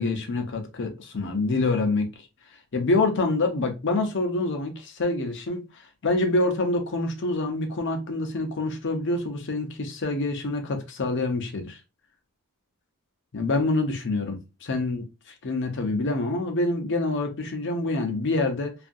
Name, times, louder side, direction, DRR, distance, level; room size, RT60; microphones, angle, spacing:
voice 1, 0.0-2.1 2.7-11.8 13.3-18.7, left 2 dB, 55° left, 0.6 m, -26 dB
2.7 x 2.4 x 2.5 m
head